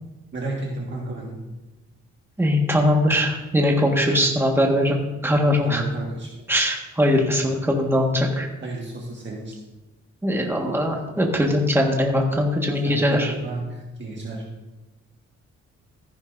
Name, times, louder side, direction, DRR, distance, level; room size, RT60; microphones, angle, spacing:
voice 1, 0.3-1.4 5.6-6.3 8.6-9.5 12.8-14.4, right 2 dB, 40° right, -2 dB, 1.7 m, -32 dB
voice 2, 2.4-5.0 5.2-5.8 6.5-8.5 10.2-13.3, left 1 dB, 10° right, 0 dB, 1.5 m, -21 dB
14.0 x 10.5 x 2.6 m, 1.1 s
wide cardioid pair, 145°, 30 cm